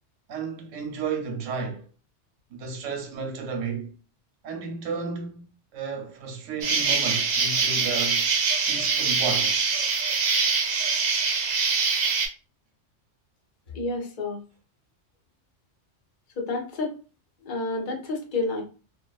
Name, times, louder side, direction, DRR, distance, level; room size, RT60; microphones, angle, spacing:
voice 1, 0.3-1.9 2.5-3.9 4.4-8.3 8.7-9.6, right 5 dB, 85° right, 1.0 m, -33 dB
Insect, 6.6-12.3, right 5 dB, 70° right, 0.4 m, -24 dB
voice 2, 13.7-14.4 16.4-16.9 17.4-18.6, left 3 dB, 50° left, 0.7 m, -29 dB
2.5 x 2.2 x 2.3 m
omnidirectional pair, 1.2 m